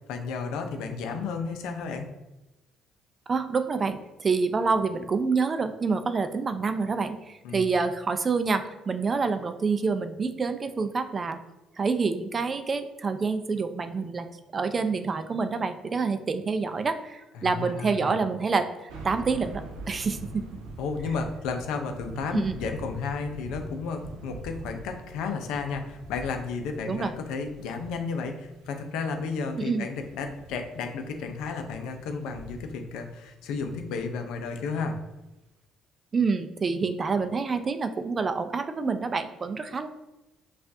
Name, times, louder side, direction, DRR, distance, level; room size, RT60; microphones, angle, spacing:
voice 1, 0.1-2.1 7.4-7.6 17.3-18.2 20.8-35.0, left 5 dB, 80° left, 5 dB, 0.5 m, -33 dB
voice 2, 3.3-11.4 11.8-14.3 14.5-18.7 19.0-20.4 22.3-22.6 26.9-27.1 29.6-29.9 36.1-39.9, right 4 dB, 35° right, 9 dB, 0.4 m, -27 dB
sound 1, 18.9-34.1 34.6-34.7, right 2 dB, 80° right, 0.7 m, -44 dB
5.8 x 2.4 x 2.6 m, 1.0 s
supercardioid pair, 80°, 0 cm